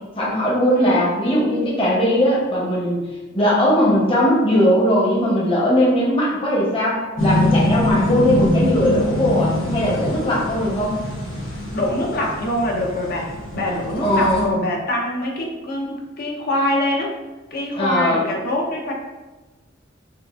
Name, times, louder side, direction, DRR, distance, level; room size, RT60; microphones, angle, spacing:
voice 1, 0.2-3.0 3.3-11.0 14.0-14.5 17.7-18.2, equal, 30° left, -6 dB, 1.0 m, -19 dB
sound 1, 7.2-14.4, left 1 dB, 85° left, 1.0 m, -24 dB
voice 2, 11.7-17.1 17.5-18.9, left 1 dB, 50° left, -1 dB, 0.8 m, -24 dB
5.6 x 2.4 x 2.5 m, 1.2 s
head